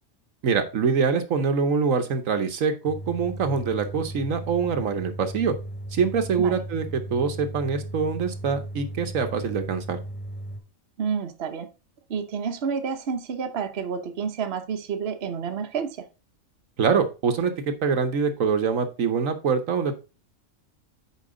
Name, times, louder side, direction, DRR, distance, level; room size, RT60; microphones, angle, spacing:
voice 1, 0.4-5.5 5.9-10.0 16.8-20.0, right 5 dB, 70° right, 1.3 m, -24 dB
sound 1, 2.9-10.6, right 1 dB, 5° left, 1.8 m, -36 dB
voice 2, 11.0-11.7 12.1-16.1, right 6 dB, 50° right, 1.0 m, -29 dB
8.5 x 5.0 x 3.8 m
omnidirectional pair, 1.5 m